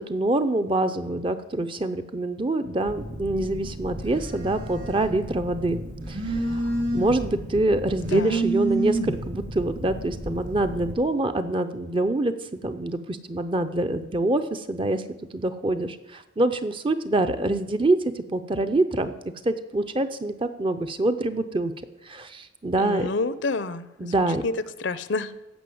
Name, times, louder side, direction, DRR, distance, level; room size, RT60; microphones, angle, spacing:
voice 1, 0.0-5.8 6.1-15.0 15.3-21.7 22.1-23.1 24.0-24.4, right 2 dB, 25° right, 9 dB, 0.6 m, -25 dB
Telephone, 2.9-10.9, right 2 dB, 60° right, 3.3 m, -30 dB
voice 2, 8.1-8.4 22.8-24.1 24.4-24.5 24.8-25.3, left 3 dB, 60° left, 14 dB, 0.6 m, -28 dB
15.0 x 5.6 x 7.8 m, 0.97 s
head